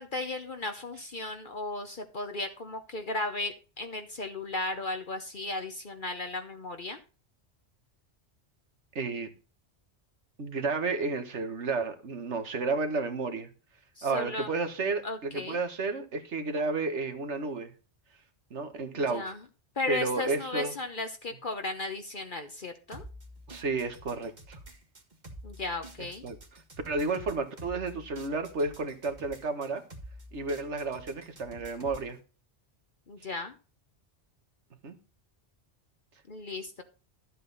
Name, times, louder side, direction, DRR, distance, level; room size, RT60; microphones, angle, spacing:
voice 1, 0.0-7.0 14.0-14.5 15.0-15.6 18.9-19.4 19.8-23.0 25.4-26.2 33.1-33.5 36.3-36.8, left 2 dB, 50° left, 1.1 m, -35 dB
voice 2, 9.0-9.3 10.4-13.5 14.0-17.7 18.5-19.3 19.9-20.7 23.5-24.6 26.0-26.4 26.9-29.8 30.3-32.2 34.8-35.0, right 3 dB, 80° right, 1.7 m, -32 dB
sound 1, 22.9-32.1, right 1 dB, 40° right, 1.8 m, -48 dB
12.0 x 7.7 x 4.0 m
omnidirectional pair, 1.2 m